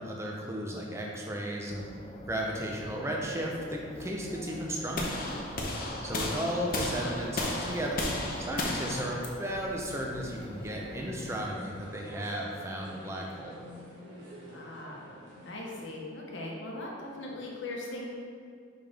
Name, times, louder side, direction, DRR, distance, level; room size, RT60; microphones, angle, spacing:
voice 1, 0.0-1.9 2.3-5.2 6.0-8.1 8.4-13.6, right 1 dB, 15° right, -1 dB, 0.6 m, -34 dB
sound 1, 1.7-11.5, left 1 dB, 30° left, 0.4 m, -46 dB
sound 2, 4.9-11.0, left 1 dB, 45° left, 0.8 m, -34 dB
sound 3, 6.0-15.9, equal, 75° right, 1.3 m, -49 dB
voice 2, 14.5-14.9 15.4-18.0, left 2 dB, 75° left, -2 dB, 1.0 m, -39 dB
5.3 x 5.3 x 3.5 m, 2.2 s
head